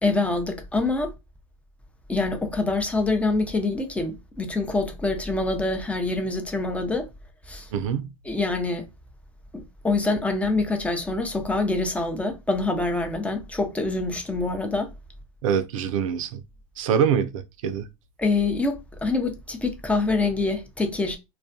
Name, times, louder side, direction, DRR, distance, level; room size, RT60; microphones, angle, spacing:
voice 1, 0.0-1.1 2.1-7.1 7.5-7.7 8.2-8.9 9.5-14.9 18.2-21.2, left 3 dB, 5° left, 0.6 m, -25 dB
voice 2, 7.7-8.1 15.4-16.4 16.8-17.8, right 7 dB, 75° right, 0.5 m, -24 dB
2.3 x 2.2 x 2.5 m
hypercardioid pair, 105°, 17 cm